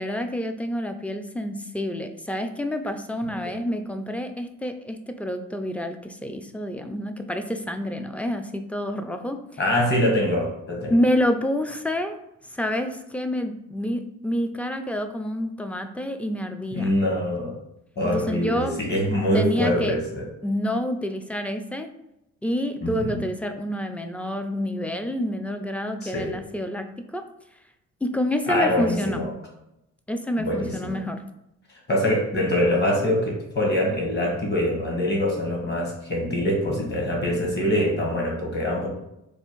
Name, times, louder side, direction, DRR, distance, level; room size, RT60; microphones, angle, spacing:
voice 1, 0.0-9.6 10.9-12.2 12.5-17.0 18.0-18.7 19.3-20.0 20.4-21.9 22.4-27.2 28.0-29.2 30.1-31.2, equal, 5° left, 7 dB, 0.3 m, -28 dB
voice 2, 9.6-11.0 16.7-17.5 18.0-20.2 22.8-23.2 26.0-26.3 28.5-29.3 30.4-31.0 31.9-38.9, left 1 dB, 35° left, -1 dB, 1.5 m, -24 dB
3.3 x 2.5 x 4.5 m, 0.86 s
cardioid pair, 90°, 30 cm